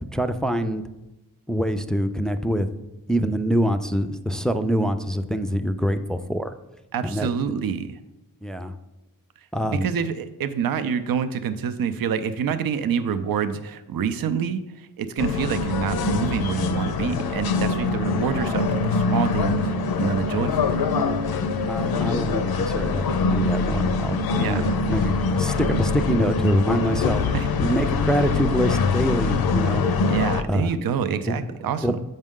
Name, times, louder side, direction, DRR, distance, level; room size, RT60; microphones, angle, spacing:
voice 1, 0.0-0.8 1.5-2.7 3.1-6.6 7.0-7.3 8.4-8.8 9.5-9.9 21.7-27.2 27.6-29.8 30.5-30.8 31.3-31.4 31.8-31.9, equal, ahead, 9 dB, 0.3 m, -25 dB
voice 2, 6.9-8.0 9.6-20.8 24.4-24.7 27.3-27.5 30.1-32.0, right 7 dB, 75° right, 11 dB, 0.5 m, -27 dB
sound 1, 15.2-30.4, left 4 dB, 80° left, 0.6 m, -24 dB
7.3 x 5.3 x 3.7 m, 0.98 s
wide cardioid pair, 80°, 36 cm